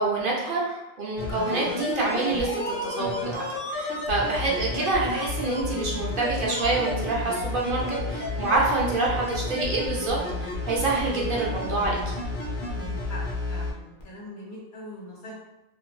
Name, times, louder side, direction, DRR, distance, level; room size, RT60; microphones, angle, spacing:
voice 1, 0.0-3.4 3.7-12.0, right 3 dB, 60° right, -4 dB, 0.8 m, -27 dB
sound 1, 1.2-13.7 14.0-14.1, left 2 dB, 60° left, 0.8 m, -31 dB
voice 2, 12.7-13.2 13.5-15.3, left 1 dB, 75° left, -4 dB, 1.2 m, -42 dB
2.9 x 2.5 x 2.3 m, 0.97 s
omnidirectional pair, 1.1 m